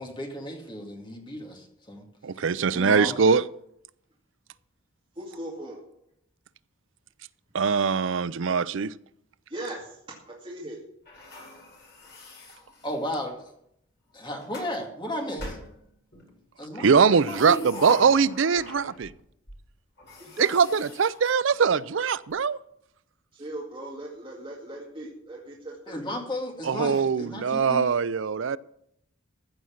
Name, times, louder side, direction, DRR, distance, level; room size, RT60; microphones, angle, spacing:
voice 1, 0.0-2.0 2.7-3.1 12.8-13.4 14.1-15.6 16.6-16.9 17.3-17.6 25.9-27.8, left 1 dB, 20° left, 2.3 m, -34 dB
voice 2, 2.2-3.4 7.5-8.9 16.8-19.1 20.4-22.6 26.6-28.6, right 5 dB, 65° right, 0.5 m, -22 dB
voice 3, 5.2-5.8 9.5-10.0 10.3-10.8 20.2-20.7 23.3-26.0, right 1 dB, 25° right, 2.2 m, -39 dB
sound 1, 11.1-13.3 14.1-14.7 15.4-16.3 17.0-19.2 19.5-19.6 20.0-22.0, left 1 dB, 55° left, 6.3 m, -41 dB
15.0 x 6.4 x 7.2 m
head